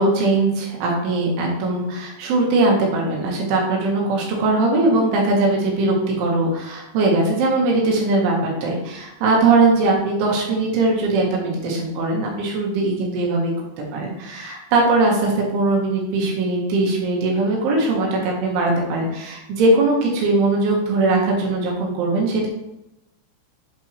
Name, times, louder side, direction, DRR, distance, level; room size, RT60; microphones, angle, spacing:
voice 1, 0.0-13.5 13.9-22.5, right 2 dB, 80° right, -1 dB, 4.0 m, -20 dB
8.0 x 5.9 x 3.3 m, 0.89 s
omnidirectional pair, 5.4 m